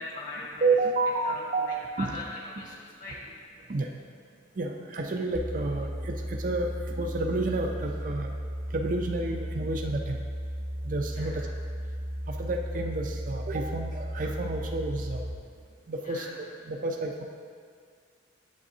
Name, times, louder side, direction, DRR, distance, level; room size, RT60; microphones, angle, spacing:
voice 1, 0.0-3.2 11.1-11.5 16.0-16.4, left 2 dB, 45° left, -4 dB, 1.5 m, -41 dB
voice 2, 0.6-1.7 2.0-2.1 3.7-3.9 4.6-8.3 8.7-10.2 10.8-11.4 12.3-15.2 15.9-16.3 16.7-17.2, right 2 dB, 45° right, 2 dB, 0.5 m, -30 dB
sound 1, 5.3-15.4, equal, 65° left, 1.2 m, -35 dB
8.6 x 7.1 x 2.7 m, 2.1 s
head